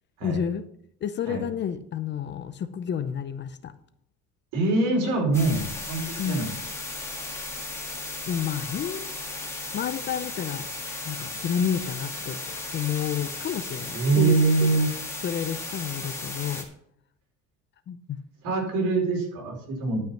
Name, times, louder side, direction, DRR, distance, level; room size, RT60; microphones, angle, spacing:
voice 1, 0.2-0.6 1.0-3.7 6.2-6.5 8.3-9.1 9.7-10.7 11.0-14.7 15.2-16.7 17.9-18.2, left 8 dB, 35° left, 12 dB, 0.6 m, -30 dB
voice 2, 4.5-6.5 13.9-14.9 18.4-20.0, right 3 dB, 70° right, -1 dB, 5.2 m, -24 dB
sound 1, 5.3-16.6, left 2 dB, 10° left, 1.8 m, -35 dB
12.0 x 5.7 x 5.8 m, 0.70 s
cardioid pair, 155°, 31 cm